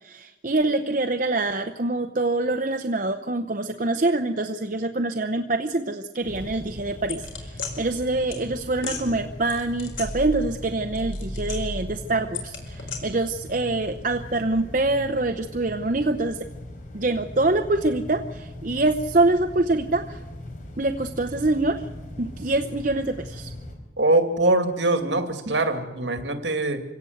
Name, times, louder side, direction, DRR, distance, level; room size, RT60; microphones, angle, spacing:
voice 1, 0.0-16.5 16.9-20.2 20.8-21.8 22.2-23.5, right 2 dB, 40° right, 6 dB, 0.9 m, -25 dB
sound 1, 6.2-23.8, left 1 dB, 45° left, 4.3 m, -40 dB
sound 2, 7.1-7.7 8.3-8.4 8.8-9.0 9.5-10.6 10.9-11.9 12.3-13.0, left 3 dB, 90° left, 4.8 m, -33 dB
voice 2, 24.0-26.8, right 2 dB, 65° right, 7 dB, 2.4 m, -23 dB
25.5 x 17.0 x 8.0 m, 1.1 s
head